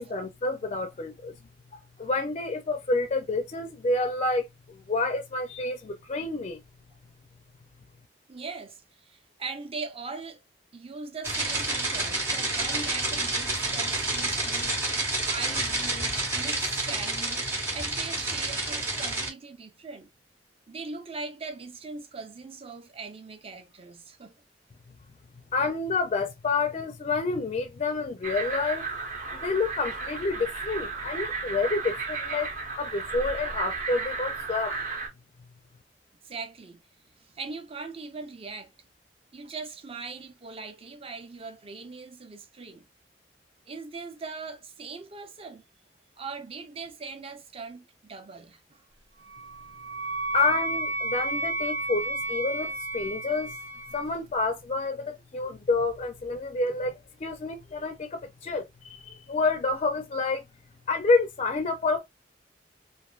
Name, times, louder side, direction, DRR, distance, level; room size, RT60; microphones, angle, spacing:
voice 1, 0.0-1.3 1.7-6.6 25.5-28.8 29.3-32.5 32.8-34.7 50.3-53.6 53.9-60.4 60.9-62.0, left 3 dB, 35° left, 0.4 m, -28 dB
voice 2, 8.3-10.4 10.7-20.1 20.7-24.3 36.2-36.8 37.2-38.7 39.3-42.9 43.7-45.6 46.2-48.8 49.3-49.4, right 4 dB, 35° right, 0.6 m, -40 dB
sound 1, 11.2-19.3, right 2 dB, 15° right, 1.0 m, -29 dB
sound 2, 28.2-35.1, right 4 dB, 50° right, 0.9 m, -34 dB
Wind instrument woodwind instrument, 49.3-54.0, right 2 dB, 75° right, 0.6 m, -32 dB
3.2 x 2.5 x 2.3 m
head